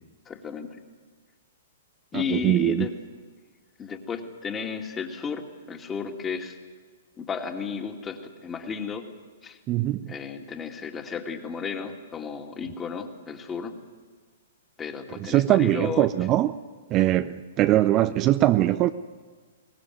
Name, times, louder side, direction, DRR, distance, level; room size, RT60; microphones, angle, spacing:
voice 1, 0.3-0.8 2.1-2.9 3.8-6.6 7.2-9.0 9.4-9.6 10.1-13.7 14.8-16.4, left 5 dB, 20° left, 2.4 m, -33 dB
voice 2, 2.1-2.9 9.7-10.1 15.2-16.6 16.9-18.9, right 14 dB, 30° right, 0.6 m, -22 dB
23.0 x 19.0 x 9.4 m
hypercardioid pair, 120°, 0 cm